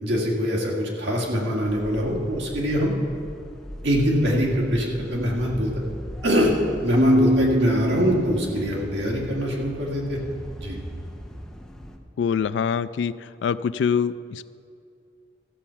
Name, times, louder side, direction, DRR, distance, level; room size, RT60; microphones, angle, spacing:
voice 1, 0.0-2.9 3.8-5.7 6.2-6.6 6.8-10.2 10.6-10.8, equal, 75° right, -2 dB, 2.0 m, -23 dB
sound 1, 1.7-12.0, equal, 5° left, 0.9 m, -40 dB
Keyboard (musical), 6.9-8.8, equal, 25° right, 0.4 m, -23 dB
voice 2, 12.2-13.1 13.4-14.5, left 6 dB, 80° left, 15 dB, 0.3 m, -24 dB
14.0 x 7.1 x 5.7 m, 2.5 s
head